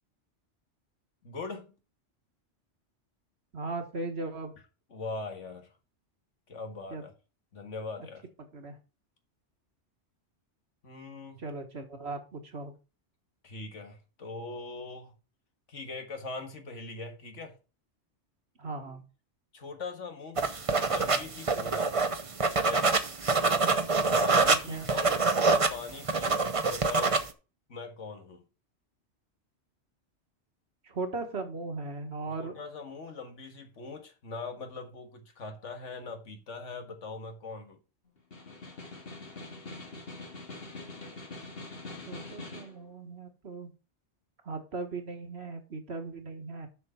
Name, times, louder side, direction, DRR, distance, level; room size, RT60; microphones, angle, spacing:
voice 1, 1.2-1.7 4.9-5.7 6.5-7.1 7.5-8.2 10.8-11.4 13.4-15.1 15.7-17.5 19.5-20.4 20.9-21.9 22.5-22.9 24.0-27.2 27.7-28.5 32.4-37.8, left 3 dB, 85° left, 1.9 m, -41 dB
voice 2, 3.5-4.5 6.9-7.0 8.5-8.8 11.4-12.7 18.6-19.0 24.5-24.9 30.8-32.5 42.1-43.7 44.5-46.7, right 3 dB, 60° right, 1.9 m, -38 dB
sound 1, 20.4-27.3, right 4 dB, 30° right, 0.8 m, -26 dB
Snare drum, 38.2-42.8, left 2 dB, 55° left, 2.0 m, -43 dB
7.2 x 6.3 x 5.7 m
omnidirectional pair, 1.2 m